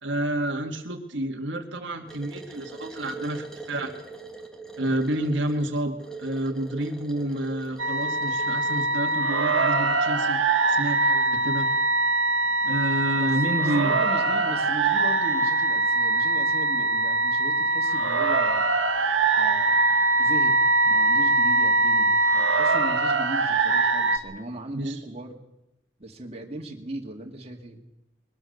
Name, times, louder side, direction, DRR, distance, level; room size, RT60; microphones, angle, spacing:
voice 1, 0.0-3.9 4.8-10.4 10.7-11.7 12.6-13.9 24.7-25.0, right 1 dB, 65° right, 3 dB, 1.8 m, -29 dB
sound 1, 2.1-9.2, right 3 dB, 5° left, 2.1 m, -42 dB
sound 2, 7.8-24.2, right 3 dB, 80° right, 1.8 m, -22 dB
voice 2, 13.1-18.7 19.4-19.8 20.2-20.6 20.8-25.4 26.0-27.9, right 1 dB, 30° right, 1 dB, 2.4 m, -38 dB
22.0 x 19.5 x 6.7 m, 0.89 s
head